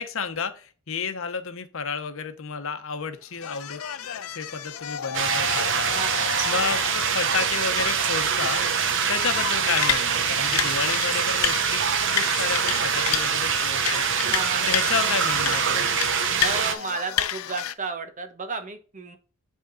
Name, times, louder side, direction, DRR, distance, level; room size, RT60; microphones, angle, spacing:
voice 1, 0.0-3.8 4.3-5.9 6.4-8.6 9.1-11.8 12.1-14.0 14.6-15.9, left 5 dB, 65° left, 9 dB, 0.9 m, -31 dB
sound 1, 3.3-17.7, left 10 dB, 85° left, 0.6 m, -31 dB
sound 2, 5.1-16.7, right 7 dB, 60° right, 0.8 m, -24 dB
voice 2, 5.8-6.6 9.5-9.8 14.1-15.0 16.4-19.2, right 4 dB, 35° right, 8 dB, 1.0 m, -33 dB
8.2 x 3.6 x 3.7 m, 0.38 s
head